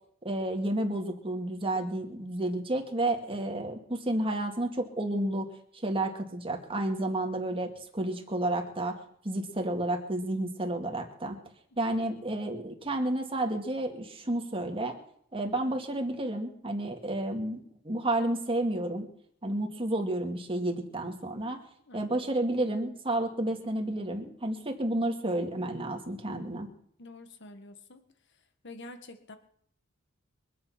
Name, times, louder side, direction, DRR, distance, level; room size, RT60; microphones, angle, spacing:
voice 1, 0.2-5.5 5.8-9.0 9.2-11.4 11.8-15.0 15.3-19.1 19.4-21.6 21.9-26.7, right 1 dB, 25° right, 3 dB, 2.3 m, -31 dB
voice 2, 27.0-28.0 28.6-29.4, left 2 dB, 60° left, 8 dB, 1.7 m, -47 dB
24.0 x 8.7 x 5.9 m, 0.67 s
head